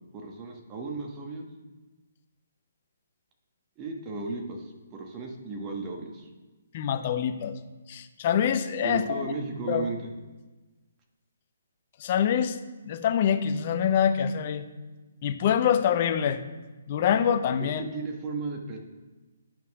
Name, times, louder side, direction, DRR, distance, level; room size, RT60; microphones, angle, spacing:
voice 1, 0.1-1.5 3.8-6.3 8.8-10.1 17.6-18.8, right 3 dB, 25° right, 2 dB, 1.4 m, -35 dB
voice 2, 6.7-7.6 7.9-9.3 9.7-9.8 12.0-12.6 12.8-14.6 15.2-16.4 16.9-17.8, left 8 dB, 40° left, 9 dB, 0.7 m, -25 dB
8.8 x 5.6 x 4.8 m, 1.2 s
hypercardioid pair, 145°, 0 cm